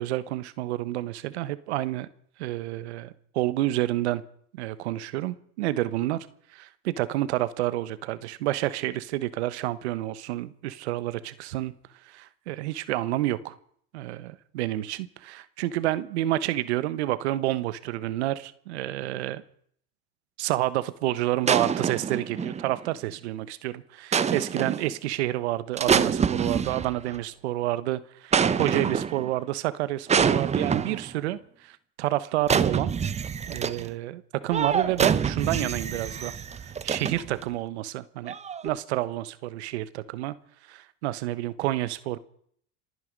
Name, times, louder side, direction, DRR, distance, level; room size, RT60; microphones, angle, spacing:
voice 1, 0.0-2.1 2.4-4.2 4.5-6.3 6.5-11.7 12.1-13.5 13.9-19.4 20.4-33.0 33.5-36.3 36.8-38.3 38.6-40.3 40.7-42.2, right 15 dB, 80° right, 15 dB, 1.3 m, -29 dB
sound 1, 21.4-22.9 24.1-24.9 25.8-27.2 28.3-29.3 30.1-31.1 32.4-33.9 34.5-37.4 38.3-38.7, right 7 dB, 20° right, 0.8 m, -26 dB
27.5 x 9.7 x 5.3 m, 0.63 s
supercardioid pair, 105°, 33 cm